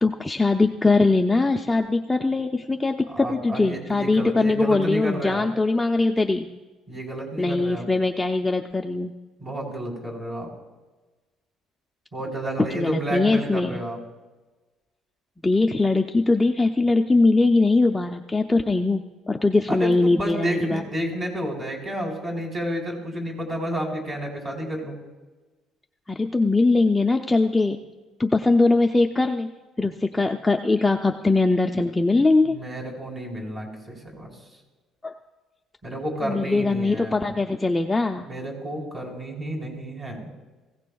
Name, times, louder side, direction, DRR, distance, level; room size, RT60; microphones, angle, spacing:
voice 1, 0.0-6.5 7.4-9.1 12.6-13.8 15.4-20.8 26.1-27.8 28.2-29.5 29.8-32.6 35.0-35.1 36.2-38.3, left 3 dB, 10° left, 3 dB, 0.4 m, -21 dB
voice 2, 3.1-5.4 6.9-7.9 9.4-10.5 12.1-14.0 19.7-25.0 32.5-34.3 35.8-37.3 38.2-40.3, right 1 dB, 25° right, -1 dB, 3.8 m, -31 dB
20.0 x 16.0 x 2.3 m, 1.2 s
cardioid pair, 150°, 0 cm